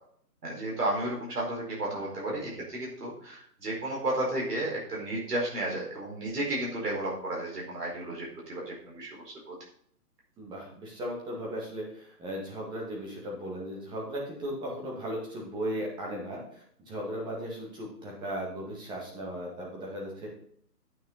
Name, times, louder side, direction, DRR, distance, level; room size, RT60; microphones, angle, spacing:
voice 1, 0.4-9.5, right 1 dB, 70° right, -3 dB, 4.8 m, -33 dB
voice 2, 1.9-2.6 10.4-20.3, equal, 10° right, -2 dB, 2.0 m, -37 dB
9.3 x 9.0 x 4.0 m, 0.63 s
hypercardioid pair, 150°, 48 cm